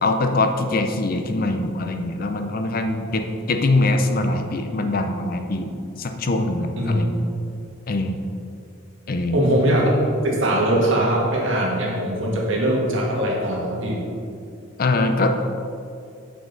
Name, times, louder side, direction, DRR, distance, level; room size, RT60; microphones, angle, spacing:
voice 1, 0.0-7.3 7.9-8.2 9.1-9.4 14.8-15.3, left 2 dB, 45° left, 6 dB, 0.5 m, -23 dB
voice 2, 9.3-14.0, right 1 dB, 70° right, -3 dB, 1.5 m, -21 dB
6.9 x 6.3 x 3.9 m, 2.4 s
head